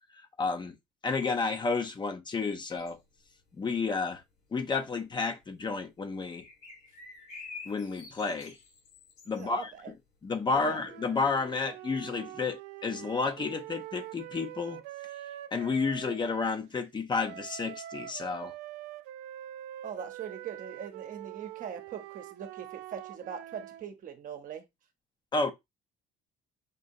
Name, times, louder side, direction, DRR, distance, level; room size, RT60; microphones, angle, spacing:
voice 1, 0.1-0.7 1.0-3.0 3.6-4.2 4.5-6.5 7.7-8.6 9.3-9.7 10.2-14.8 15.5-18.5 25.3-25.5, left 4 dB, 25° left, 0.7 m, -31 dB
sound 1, 2.8-4.0 4.3-4.8 5.1-5.2 5.4-5.8 6.4-10.8 11.0-11.1 11.4-11.6, left 4 dB, 80° left, 2.7 m, -49 dB
voice 2, 9.3-9.9 10.5-10.8 19.8-24.6, right 8 dB, 50° right, 0.9 m, -41 dB
sound 2, 10.6-16.7 17.2-23.9, right 13 dB, 90° right, 0.4 m, -44 dB
5.2 x 2.8 x 2.7 m
cardioid pair, 110°, 17 cm